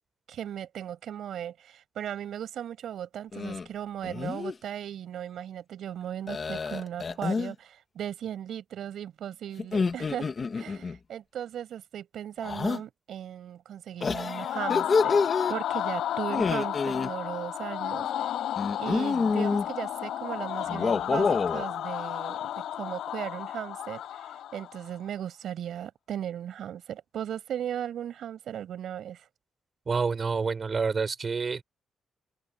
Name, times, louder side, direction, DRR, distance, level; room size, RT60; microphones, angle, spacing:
voice 1, 0.3-18.3 18.8-29.3, right 10 dB, 65° right, 6.8 m, -37 dB
sound 1, 3.3-3.7 4.0-4.5 6.3-7.5 9.6-11.0 12.4-12.8 14.0-15.5 16.3-17.1 18.6-19.7 20.6-21.7, left 4 dB, 30° left, 1.5 m, -28 dB
sound 2, 14.0-24.9, left 11 dB, 85° left, 5.5 m, -33 dB
voice 2, 29.9-31.6, right 5 dB, 30° right, 4.9 m, -28 dB
open air
wide cardioid pair, 170°, 0 cm